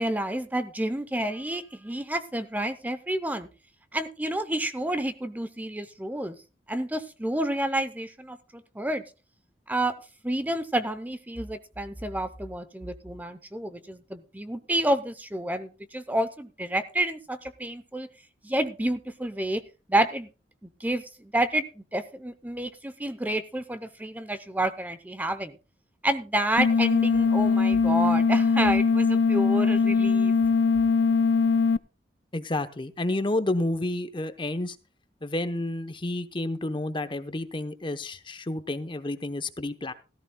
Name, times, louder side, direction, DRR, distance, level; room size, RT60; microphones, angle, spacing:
voice 1, 0.0-3.5 3.9-6.4 6.7-9.0 9.7-9.9 10.2-18.1 18.4-19.6 19.9-20.3 20.8-25.5 26.0-30.3, right 1 dB, 10° right, 11 dB, 0.7 m, -29 dB
sound 1, 26.6-31.8, left 5 dB, 85° left, 0.5 m, -21 dB
voice 2, 32.3-34.8 35.2-39.9, left 2 dB, 30° left, 11 dB, 0.8 m, -30 dB
17.0 x 14.0 x 2.2 m, 0.31 s
head